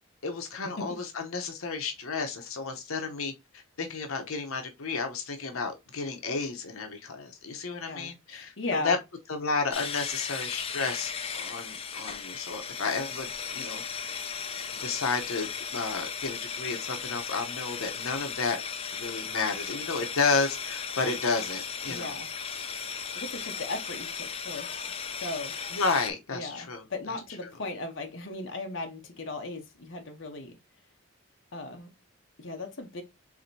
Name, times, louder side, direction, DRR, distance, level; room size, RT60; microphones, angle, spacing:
voice 1, 0.2-9.0 9.3-14.3 14.8-18.6 18.9-22.2 25.7-26.8 27.4-27.5, left 4 dB, 80° left, 0.9 m, -32 dB
voice 2, 7.9-9.0 21.9-22.3 22.8-24.7 25.2-25.5 26.3-30.6 31.5-31.9 32.4-33.0, left 2 dB, 60° left, 0.9 m, -37 dB
sound 1, 9.7-26.1, left 6 dB, 25° left, 0.5 m, -36 dB
4.8 x 3.4 x 2.7 m
head